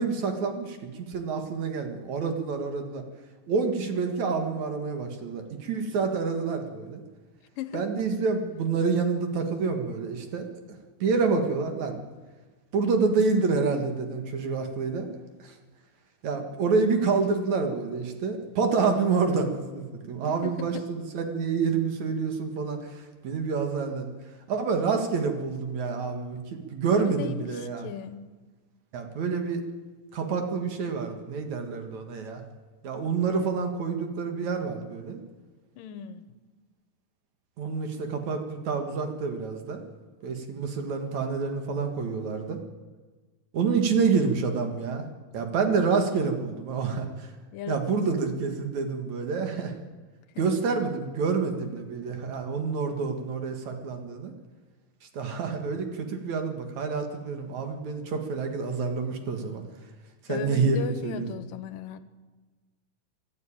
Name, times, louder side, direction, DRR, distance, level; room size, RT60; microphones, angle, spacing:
voice 1, 0.0-3.0 3.5-7.0 7.7-10.5 11.0-12.0 12.7-15.1 15.4-15.5 16.2-24.1 24.5-26.4 26.7-27.9 28.9-29.6 30.1-32.4 32.8-35.2 37.6-39.8 40.2-42.6 43.5-45.1 45.3-47.3 47.7-49.7 50.4-54.3 55.1-59.6 60.3-61.3, right 5 dB, 60° right, 5 dB, 3.0 m, -28 dB
voice 2, 7.6-7.9 20.3-20.9 26.9-28.2 35.8-36.4 47.5-48.2 50.4-50.6 60.3-62.0, left 9 dB, 80° left, 12 dB, 2.6 m, -37 dB
24.0 x 12.5 x 8.9 m, 1.3 s
omnidirectional pair, 3.9 m